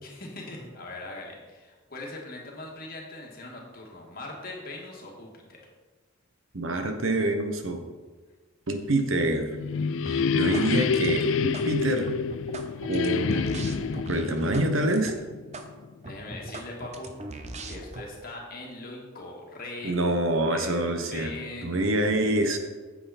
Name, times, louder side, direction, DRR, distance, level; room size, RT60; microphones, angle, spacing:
voice 1, 0.0-5.6 10.4-10.7 16.1-17.1 17.6-19.9 20.4-22.4, left 2 dB, 45° left, -1 dB, 2.0 m, -41 dB
voice 2, 6.5-7.8 8.7-9.5 10.3-12.1 12.9-13.7 14.1-15.1 19.8-21.3 21.6-22.6, right 1 dB, 75° right, 5 dB, 1.2 m, -26 dB
sound 1, 9.2-15.9, left 5 dB, 65° left, 0.4 m, -28 dB
sound 2, 10.1-10.7 10.9-11.7 12.1-14.7 14.9-15.1 15.5-15.7 16.0-18.0, right 2 dB, 35° right, 0.7 m, -39 dB
9.0 x 7.6 x 4.3 m, 1.3 s
head